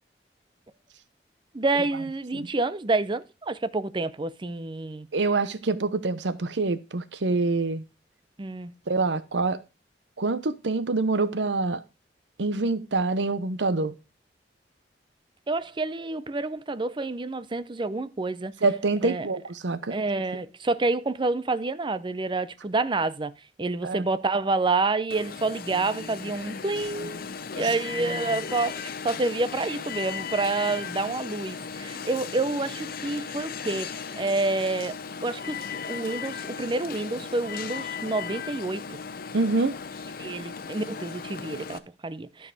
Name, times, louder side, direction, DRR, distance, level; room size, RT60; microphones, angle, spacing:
voice 1, 1.5-5.1 8.4-8.7 15.5-18.5 19.0-19.3 19.9-23.3 23.6-35.6 35.9-39.0 40.2-42.5, right 3 dB, 25° right, 0.6 m, -28 dB
voice 2, 5.1-7.8 8.9-9.6 10.2-11.8 12.4-13.9 18.6-19.9 23.8-24.0 27.6-27.7 39.3-39.8, right 3 dB, 75° right, 0.8 m, -26 dB
Alarm, 25.1-41.8, left 6 dB, 55° left, 0.7 m, -36 dB
12.5 x 4.7 x 4.8 m
head